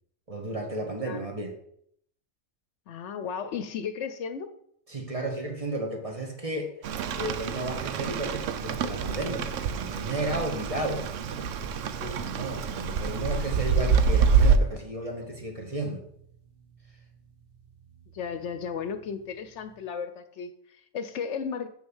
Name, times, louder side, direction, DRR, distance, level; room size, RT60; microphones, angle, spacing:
voice 1, 0.3-1.6 4.9-6.8 7.2-11.1 12.0-16.0, right 2 dB, 30° right, 2 dB, 1.6 m, -33 dB
voice 2, 2.9-4.5 12.0-12.2 18.1-21.7, left 6 dB, 70° left, 10 dB, 0.9 m, -35 dB
Rain, 6.8-14.6, right 6 dB, 80° right, 1.0 m, -26 dB
sound 1, 11.3-19.8, right 8 dB, 50° right, 1.3 m, -53 dB
7.0 x 6.3 x 6.3 m, 0.70 s
omnidirectional pair, 1.3 m